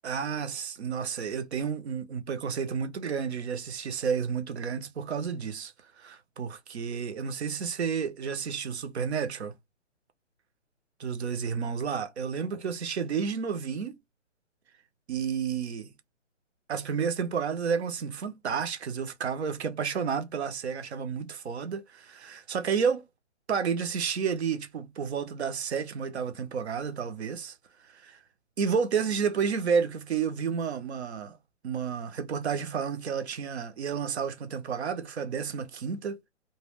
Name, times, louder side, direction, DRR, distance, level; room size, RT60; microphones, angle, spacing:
voice 1, 0.0-9.5 11.0-14.0 15.1-15.9 16.7-23.0 23.5-27.5 27.9-28.2 28.6-31.4 31.6-36.3, right 6 dB, 60° right, 0.7 m, -31 dB
2.2 x 2.2 x 3.3 m
hypercardioid pair, 155°, 37 cm